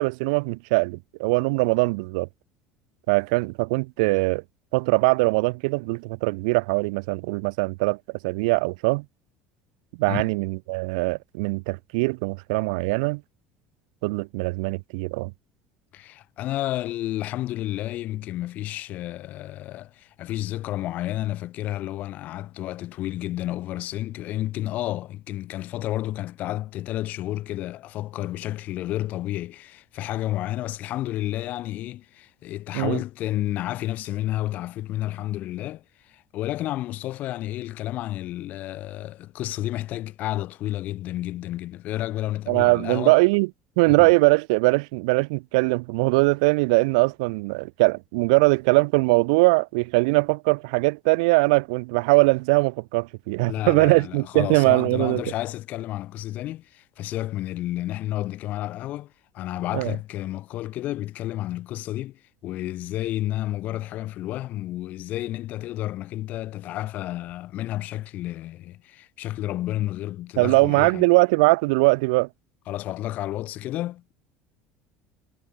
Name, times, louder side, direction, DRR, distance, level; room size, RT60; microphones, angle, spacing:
voice 1, 0.0-2.3 3.1-4.4 4.7-8.0 8.2-9.0 10.0-13.2 14.0-15.3 32.7-33.0 42.5-43.5 43.8-55.2 59.7-60.0 70.4-72.3, right 27 dB, 85° right, 1.3 m, -21 dB
voice 2, 15.9-43.2 43.9-44.1 53.4-71.1 72.7-74.1, left 15 dB, 50° left, 4.1 m, -31 dB
cardioid pair, 145°, 4 cm